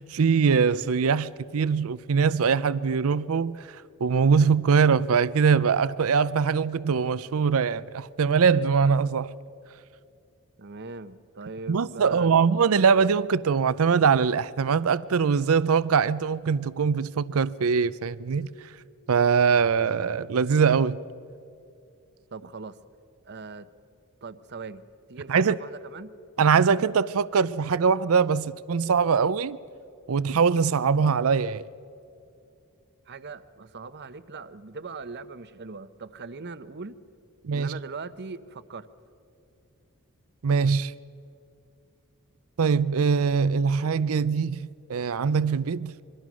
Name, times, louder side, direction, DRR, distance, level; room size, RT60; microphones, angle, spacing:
voice 1, 0.0-9.3 11.7-18.5 19.1-21.0 25.3-25.6 26.4-29.6 30.1-31.7 37.4-37.8 40.4-40.9 42.6-45.9, right 6 dB, 70° right, 0.5 m, -22 dB
voice 2, 10.6-12.3 22.3-22.8 23.2-23.7 24.2-26.1 33.1-37.0 37.5-38.9, right 4 dB, 50° right, 0.8 m, -40 dB
25.5 x 23.0 x 6.2 m
head